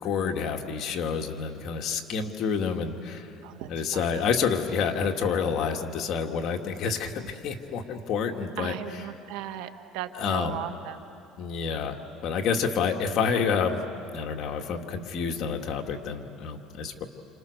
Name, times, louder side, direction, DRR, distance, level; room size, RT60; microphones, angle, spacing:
voice 1, 0.0-3.3 3.7-9.1 10.1-10.6 11.4-12.0 12.2-13.8 14.1-17.0, left 6 dB, 55° left, 3 dB, 2.2 m, -28 dB
voice 2, 3.4-4.3 8.6-11.0, right 12 dB, 80° right, 8 dB, 1.5 m, -37 dB
28.5 x 28.5 x 6.7 m, 2.8 s
cardioid pair, 120°, 0 cm